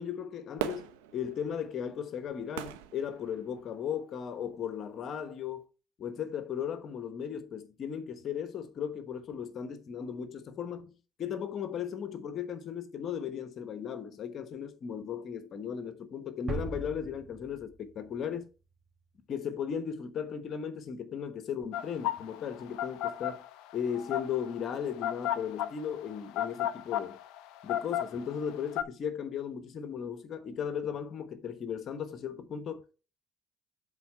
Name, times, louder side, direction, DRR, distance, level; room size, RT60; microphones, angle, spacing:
voice 1, 0.0-5.6 6.0-18.5 19.3-23.4 23.7-27.2 27.6-33.0, left 8 dB, 55° left, 1.1 m, -36 dB
Fireworks, 0.6-3.9 4.5-4.6, right 10 dB, 90° right, 0.9 m, -40 dB
sound 1, 16.5-18.4, right 2 dB, 35° right, 1.7 m, -39 dB
sound 2, 21.7-28.8, left 12 dB, 75° left, 0.6 m, -33 dB
8.1 x 4.1 x 4.4 m
hypercardioid pair, 65°, 0 cm